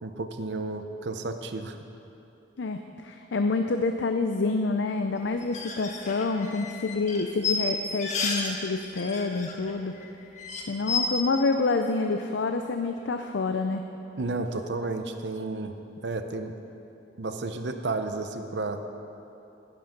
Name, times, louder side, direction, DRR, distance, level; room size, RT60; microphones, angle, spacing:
voice 1, 0.0-1.8 14.2-15.8 16.0-16.5 17.2-18.8, right 3 dB, 75° right, 7 dB, 0.8 m, -32 dB
voice 2, 2.6-10.0 10.7-13.9, left 3 dB, 85° left, 6 dB, 0.5 m, -27 dB
sound 1, 5.4-8.6 8.8-9.7 10.0-10.1 10.4-11.0, left 5 dB, 40° left, 1.4 m, -31 dB
12.0 x 11.5 x 5.3 m, 2.8 s
head